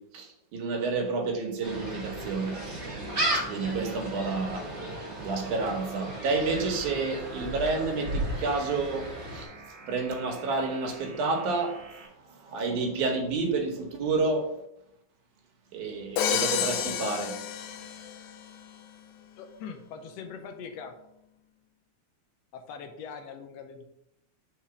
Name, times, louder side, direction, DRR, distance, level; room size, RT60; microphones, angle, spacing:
voice 1, 0.0-2.6 3.3-4.7 5.2-9.5 9.9-11.8 12.2-14.5 15.7-17.9, right 3 dB, 80° right, 2.5 m, -30 dB
Gull seagull, 1.6-9.4, right 1 dB, 25° right, 1.8 m, -35 dB
sound 1, 2.1-12.1, right 3 dB, 50° right, 1.2 m, -47 dB
Crash cymbal, 16.2-18.4, left 9 dB, 90° left, 2.1 m, -30 dB
voice 2, 19.4-20.9 22.5-23.8, left 6 dB, 70° left, 1.7 m, -42 dB
4.9 x 4.5 x 5.6 m
omnidirectional pair, 3.5 m